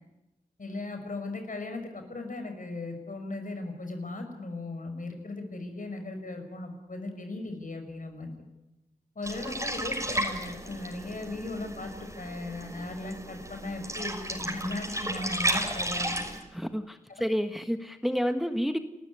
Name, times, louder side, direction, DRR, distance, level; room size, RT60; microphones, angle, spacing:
voice 1, 0.6-8.3 9.2-16.2, left 2 dB, 60° left, 5 dB, 6.0 m, -37 dB
sound 1, 9.2-16.4, right 1 dB, 20° right, 6.1 m, -33 dB
voice 2, 16.5-18.8, equal, ahead, 8 dB, 1.5 m, -29 dB
30.0 x 14.0 x 9.8 m, 0.96 s
cardioid pair, 50°, 15 cm